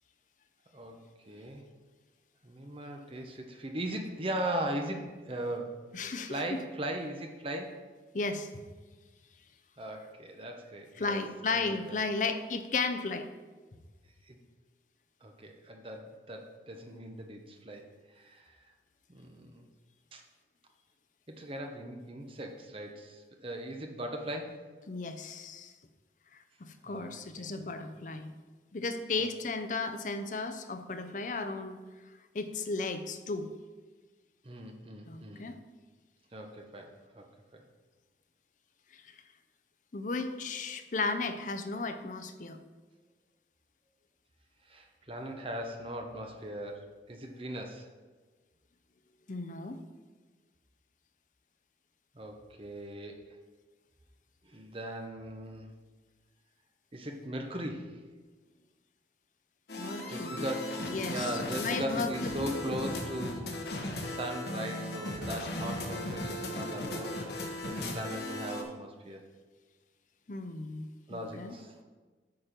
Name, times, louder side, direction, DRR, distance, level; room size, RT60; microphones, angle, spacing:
voice 1, 0.7-1.6 2.4-6.0 6.2-7.7 9.8-11.2 11.5-11.9 14.3-14.4 15.2-17.8 18.1-18.6 19.1-19.6 20.1-20.2 21.3-24.6 26.8-27.5 34.4-35.5 36.3-37.2 37.5-37.6 44.7-47.9 52.1-53.3 54.4-55.7 56.9-58.0 60.1-63.6 64.0-69.3 71.1-71.8, right 1 dB, 30° right, 3 dB, 0.8 m, -39 dB
voice 2, 5.9-6.4 8.1-8.5 11.0-13.3 24.9-25.7 26.6-28.3 28.7-31.8 32.3-33.5 35.1-35.5 38.9-39.0 39.9-42.6 49.3-49.8 59.8-60.5 60.9-62.4 70.3-71.5, left 3 dB, 45° left, 8 dB, 0.6 m, -35 dB
sound 1, 59.7-68.6, left 1 dB, 65° left, 1.2 m, -37 dB
8.7 x 4.4 x 5.1 m, 1.3 s
head